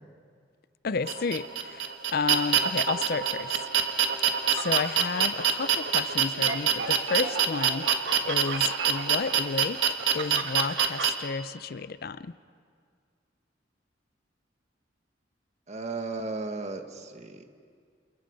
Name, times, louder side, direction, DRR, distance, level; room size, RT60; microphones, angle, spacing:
voice 1, 0.8-3.6 4.5-7.9 8.2-9.8 10.1-12.3, left 4 dB, 55° left, 15 dB, 0.5 m, -31 dB
sound 1, 1.1-11.1, right 8 dB, 85° right, 1.7 m, -25 dB
voice 2, 15.7-17.5, right 3 dB, 40° right, 5 dB, 1.6 m, -35 dB
29.5 x 28.0 x 5.3 m, 2.1 s
head